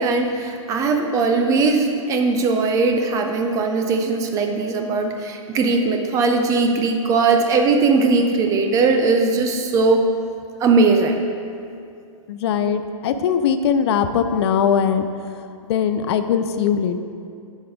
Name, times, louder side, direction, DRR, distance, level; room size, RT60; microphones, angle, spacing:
voice 1, 0.0-10.1 10.6-11.2, right 3 dB, 20° right, 4 dB, 0.4 m, -19 dB
voice 2, 12.3-15.1 15.7-17.0, left 7 dB, 50° left, 9 dB, 0.4 m, -20 dB
8.5 x 5.4 x 3.5 m, 2.5 s
hypercardioid pair, 140°, 17 cm